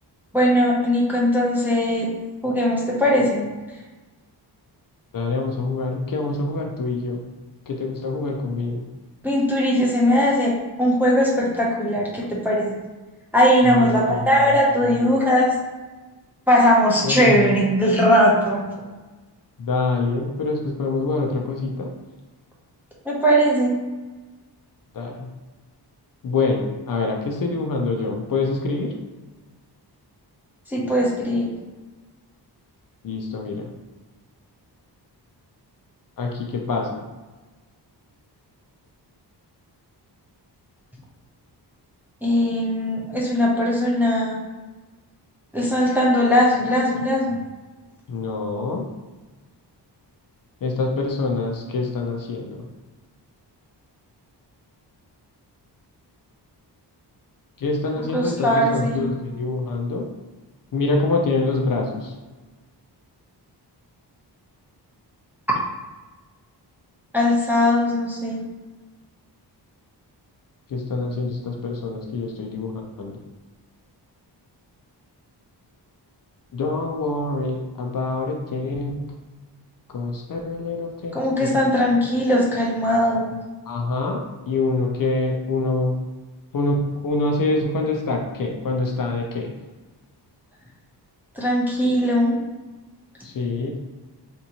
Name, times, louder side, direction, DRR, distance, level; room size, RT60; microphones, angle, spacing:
voice 1, 0.3-2.1 2.4-3.5 9.2-10.5 10.8-12.8 13.3-15.5 16.5-18.7 23.1-23.8 30.7-31.5 42.2-44.4 45.5-47.4 58.1-59.1 67.1-68.5 81.1-83.3 91.4-92.4, equal, 5° right, -5 dB, 0.5 m, -19 dB
voice 2, 5.1-7.2 7.7-8.8 13.6-14.6 17.0-17.6 19.6-21.9 24.9-25.3 26.2-28.9 33.0-33.7 36.2-37.0 48.1-48.8 50.6-52.6 57.6-60.1 60.7-62.1 70.7-73.2 76.5-79.1 79.9-81.5 83.7-85.9 86.5-89.5 93.2-93.7, left 3 dB, 55° left, 1 dB, 0.5 m, -25 dB
3.4 x 2.7 x 2.8 m, 1.2 s
wide cardioid pair, 165°, 42 cm